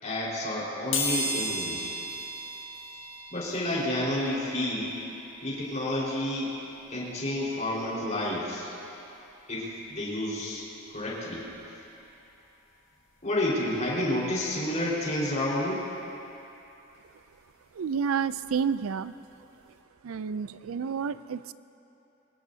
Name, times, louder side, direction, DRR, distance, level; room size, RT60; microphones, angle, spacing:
voice 1, 0.0-1.9 3.3-5.0 5.4-6.5 6.9-8.7 9.5-10.6 10.9-11.4 13.2-15.8, left 1 dB, 35° left, -6 dB, 4.5 m, -30 dB
sound 1, 0.9-11.6 12.1-12.2 13.3-13.4 13.7-15.8 16.1-18.8 19.1-19.3 19.6-19.7, left 1 dB, 65° left, 2.1 m, -38 dB
voice 2, 17.8-19.1 20.0-21.5, right 6 dB, 85° right, 15 dB, 0.4 m, -30 dB
23.5 x 20.0 x 2.8 m, 2.9 s
head